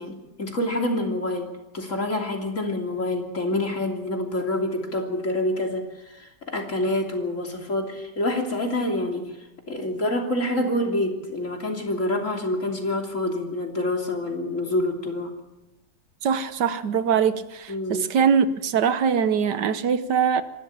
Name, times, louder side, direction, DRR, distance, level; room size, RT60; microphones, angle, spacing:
voice 1, 0.0-9.3 9.7-15.3 17.7-18.1, left 1 dB, 45° left, 3.5 m, -27 dB
voice 2, 16.2-20.4, right 7 dB, 75° right, 1.6 m, -22 dB
26.0 x 12.5 x 8.8 m
omnidirectional pair, 1.8 m